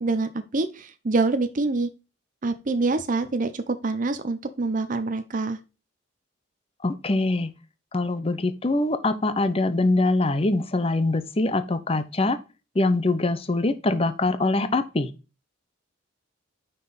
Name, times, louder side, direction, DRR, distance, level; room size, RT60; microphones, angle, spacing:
voice 1, 0.0-1.9 2.4-5.6, right 3 dB, 40° right, 9 dB, 0.6 m, -26 dB
voice 2, 6.8-7.5 7.9-12.4 12.7-15.1, left 2 dB, 25° left, 11 dB, 0.7 m, -23 dB
5.8 x 5.4 x 4.0 m, 0.29 s
head